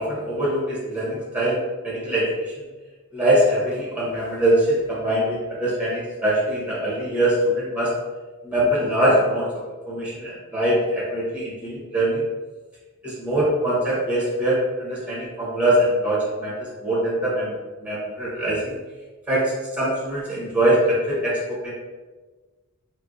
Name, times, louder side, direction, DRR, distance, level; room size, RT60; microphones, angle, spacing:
voice 1, 0.0-2.7 3.1-7.9 8.4-9.5 9.9-12.2 13.0-17.5 17.8-18.8 19.3-21.7, right 1 dB, 5° right, -7 dB, 1.0 m, -23 dB
4.4 x 2.1 x 2.5 m, 1.3 s
head